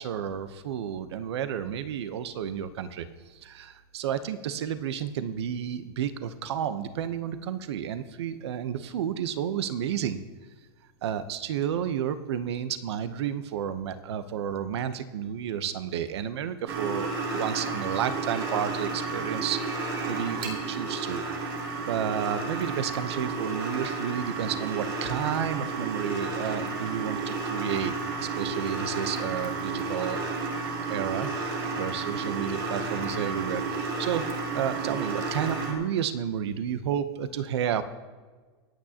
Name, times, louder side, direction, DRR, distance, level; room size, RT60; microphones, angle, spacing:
voice 1, 0.0-3.1 3.3-10.2 11.0-21.5 21.8-27.9 28.2-31.3 31.8-34.2 34.5-37.8, right 9 dB, 80° right, 11 dB, 0.9 m, -31 dB
sound 1, 16.7-35.7, right 3 dB, 60° right, 3.0 m, -32 dB
25.5 x 8.8 x 2.9 m, 1.4 s
supercardioid pair, 175°, 14 cm